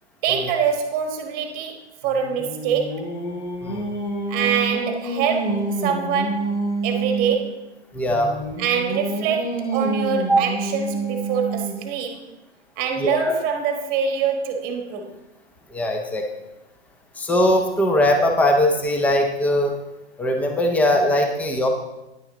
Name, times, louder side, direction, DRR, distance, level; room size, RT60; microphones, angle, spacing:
voice 1, 0.2-1.8 2.0-3.1 4.3-7.7 8.6-12.2 12.8-15.1, right 7 dB, 25° right, 5 dB, 1.3 m, -25 dB
Singing, 2.0-7.5 8.1-12.0, right 2 dB, 85° left, 2.9 m, -28 dB
voice 2, 7.9-8.3 10.3-10.4 13.0-13.3 15.7-16.2 17.2-19.7 20.2-21.7, left 1 dB, 5° left, 3 dB, 0.8 m, -20 dB
10.0 x 9.5 x 3.8 m, 0.95 s
hypercardioid pair, 135°, 34 cm